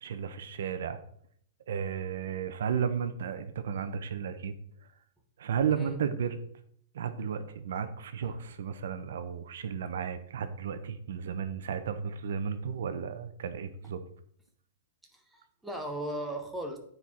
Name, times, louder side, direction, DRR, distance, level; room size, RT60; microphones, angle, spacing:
voice 1, 0.0-1.0 1.7-4.6 5.4-6.4 6.9-14.0, right 7 dB, 65° right, 11 dB, 0.7 m, -33 dB
voice 2, 15.1-16.8, right 1 dB, ahead, 1 dB, 0.8 m, -37 dB
9.6 x 4.5 x 4.2 m, 0.66 s
hypercardioid pair, 175°, 0 cm